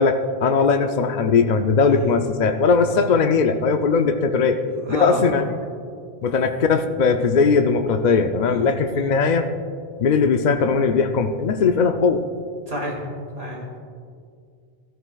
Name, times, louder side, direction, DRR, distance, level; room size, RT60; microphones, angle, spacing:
voice 1, 0.0-4.6 4.9-5.4 6.2-9.5 10.0-12.2, left 5 dB, 55° left, 6 dB, 0.6 m, -19 dB
voice 2, 4.7-5.4 8.5-9.2 12.7-13.0 13.4-13.8, equal, 80° right, -1 dB, 2.3 m, -31 dB
15.0 x 14.0 x 2.3 m, 2.3 s
omnidirectional pair, 1.0 m